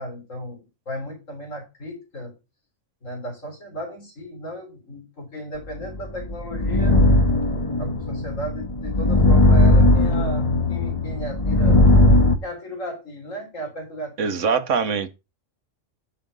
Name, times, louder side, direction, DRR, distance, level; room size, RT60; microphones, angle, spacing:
voice 1, 0.0-2.3 3.0-7.0 7.8-11.9 12.4-14.3, equal, 90° left, 3.9 m, -35 dB
sound 1, 5.9-12.3, left 1 dB, 30° left, 1.3 m, -18 dB
voice 2, 14.2-15.1, right 5 dB, 70° right, 1.4 m, -22 dB
9.7 x 5.7 x 5.4 m
omnidirectional pair, 1.3 m